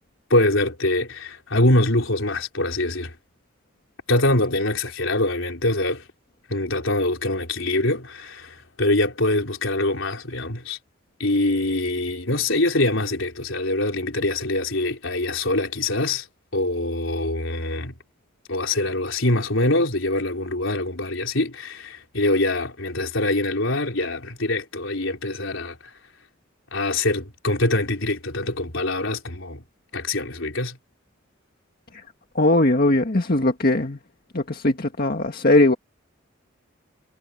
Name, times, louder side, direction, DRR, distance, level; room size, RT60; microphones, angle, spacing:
voice 1, 0.3-3.1 4.1-6.0 6.5-10.8 11.2-16.3 16.5-17.9 18.5-25.9 26.7-29.6 29.9-30.8, left 2 dB, 75° left, 4.1 m, -24 dB
voice 2, 32.4-34.0 34.3-35.7, left 2 dB, 50° left, 1.8 m, -19 dB
head